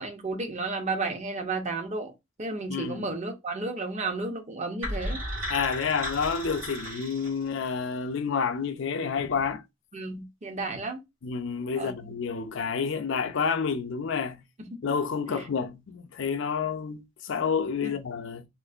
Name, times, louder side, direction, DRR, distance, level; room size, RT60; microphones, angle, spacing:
voice 1, 0.0-2.1 2.4-5.2 9.9-11.0 11.8-11.9 14.6-15.0 15.3-15.5 17.8-17.9, right 3 dB, 35° right, 0.6 m, -33 dB
voice 2, 2.7-3.1 5.5-9.6 11.2-14.4 14.8-18.4, left 6 dB, 65° left, 0.5 m, -29 dB
sound 1, 4.8-7.8, equal, 85° right, 1.5 m, -35 dB
3.7 x 2.5 x 2.4 m
head